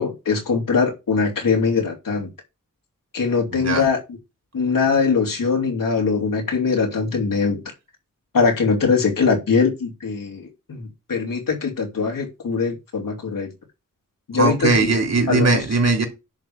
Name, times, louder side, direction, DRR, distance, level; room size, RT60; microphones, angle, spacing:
voice 1, 0.0-2.3 3.1-4.0 4.5-7.6 8.3-13.5 14.3-14.9 15.3-15.6, left 5 dB, 90° left, 3.2 m, -21 dB
voice 2, 3.5-3.9 14.3-16.0, right 3 dB, 55° right, 3.3 m, -19 dB
10.5 x 3.8 x 7.1 m
wide cardioid pair, 65°, 32 cm